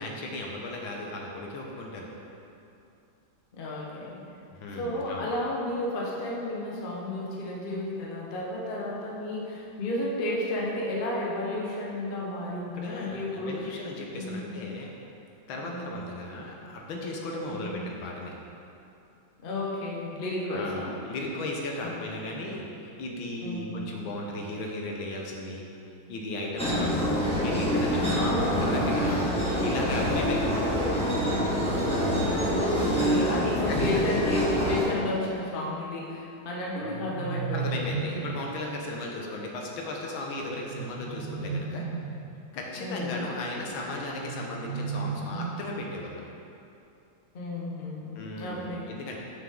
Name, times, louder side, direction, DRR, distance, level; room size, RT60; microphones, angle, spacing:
voice 1, 0.0-2.1 4.5-5.3 12.7-14.9 15.5-18.3 20.5-25.6 26.1-27.1 27.4-29.3 29.6-31.2 32.9-33.2 33.9-34.1 37.5-41.9 42.5-46.2 48.2-49.2, left 2 dB, 75° left, -1 dB, 1.6 m, -36 dB
voice 2, 3.5-4.2 4.8-13.7 14.1-14.5 15.5-15.9 17.5-17.8 19.4-21.0 21.8-22.2 23.4-23.7 26.7-27.1 28.2-29.1 29.6-30.1 32.3-38.1 42.8-43.1 47.3-48.9, left 1 dB, 35° left, -4 dB, 0.9 m, -32 dB
sound 1, 26.6-34.9, equal, 5° left, 1.3 m, -26 dB
sound 2, 36.8-38.6 40.5-42.3 44.2-46.1, right 5 dB, 85° right, 0.6 m, -35 dB
7.6 x 6.1 x 3.7 m, 2.7 s
omnidirectional pair, 2.3 m